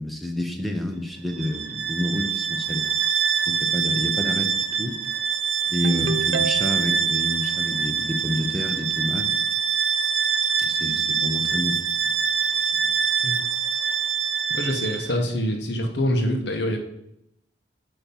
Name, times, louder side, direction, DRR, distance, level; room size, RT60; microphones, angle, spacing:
voice 1, 0.0-2.8 3.5-5.0 5.7-9.3 10.6-12.1, left 1 dB, ahead, 3 dB, 0.7 m, -29 dB
Bowed string instrument, 1.3-15.2, right 7 dB, 90° right, 0.8 m, -25 dB
Ringtone, 5.8-7.0, right 5 dB, 60° right, 0.3 m, -29 dB
voice 2, 14.5-16.8, equal, 65° left, 4 dB, 1.1 m, -25 dB
8.5 x 3.1 x 5.3 m, 0.78 s
head